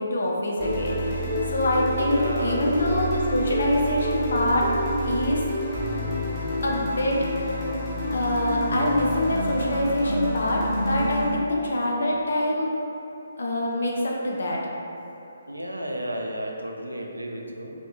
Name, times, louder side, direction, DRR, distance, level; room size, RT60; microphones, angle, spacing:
voice 1, 0.0-4.7 5.0-5.4 6.6-7.3 8.1-12.8 13.4-14.7, left 1 dB, 60° left, -2 dB, 0.4 m, -25 dB
sound 1, 0.6-11.3, equal, 5° right, 0.9 m, -28 dB
voice 2, 2.1-2.7 15.5-17.7, right 1 dB, 85° right, 0 dB, 0.3 m, -33 dB
2.7 x 2.5 x 2.4 m, 2.8 s
figure-of-eight pair, 140°, 0 cm